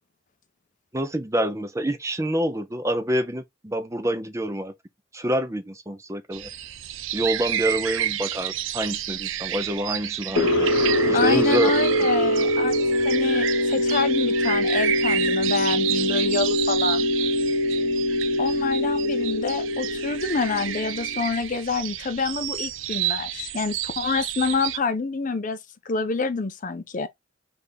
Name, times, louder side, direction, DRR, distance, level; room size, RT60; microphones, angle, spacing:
voice 1, 0.9-4.7 5.1-6.5 7.1-10.7 11.1-11.7, right 1 dB, 15° right, 0.6 m, -27 dB
sound 1, 6.3-24.8, right 12 dB, 75° right, 0.5 m, -30 dB
sound 2, 10.4-21.2, left 1 dB, 90° left, 0.9 m, -23 dB
voice 2, 11.1-12.8 13.0-17.1 18.4-25.6 25.9-27.1, left 4 dB, 40° left, 0.5 m, -27 dB
3.4 x 3.4 x 4.0 m
head